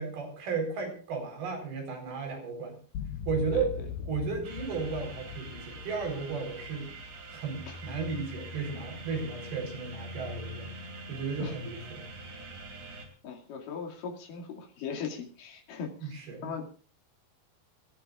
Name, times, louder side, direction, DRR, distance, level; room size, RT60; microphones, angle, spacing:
voice 1, 0.0-2.8 3.3-3.7 4.1-6.9 7.3-10.7 11.1-12.0 16.0-16.5, right 4 dB, 85° right, 3 dB, 6.3 m, -34 dB
sound 1, 2.9-8.3, left 6 dB, 85° left, 3.2 m, -41 dB
voice 2, 3.5-3.9 7.6-7.8 11.4-11.5 13.2-16.7, left 6 dB, 65° left, 2 dB, 4.0 m, -39 dB
sound 2, 4.4-13.1, right 1 dB, 55° right, 4.3 m, -44 dB
27.0 x 13.5 x 2.5 m, 0.40 s
omnidirectional pair, 4.3 m